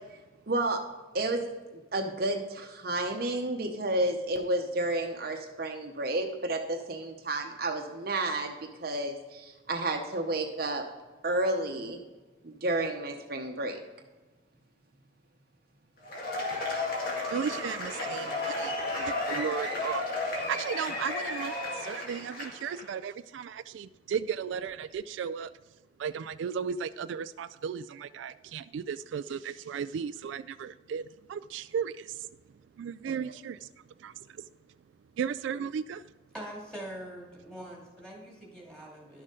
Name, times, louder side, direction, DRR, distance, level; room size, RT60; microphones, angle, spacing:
voice 1, 0.5-0.8 1.1-1.4 1.7-8.5 8.8-10.8 11.2-12.0 12.4-13.8 33.0-33.2, right 2 dB, 50° right, 3 dB, 0.8 m, -31 dB
Cheering / Applause / Crowd, 16.0-22.8, left 2 dB, 50° left, 2.1 m, -33 dB
voice 2, 16.5-25.5 26.0-32.3 32.8-34.5 35.2-36.1, right 7 dB, 80° right, 13 dB, 0.3 m, -36 dB
voice 3, 36.3-39.2, equal, 5° left, -4 dB, 2.5 m, -43 dB
11.5 x 6.5 x 3.8 m, 1.2 s
head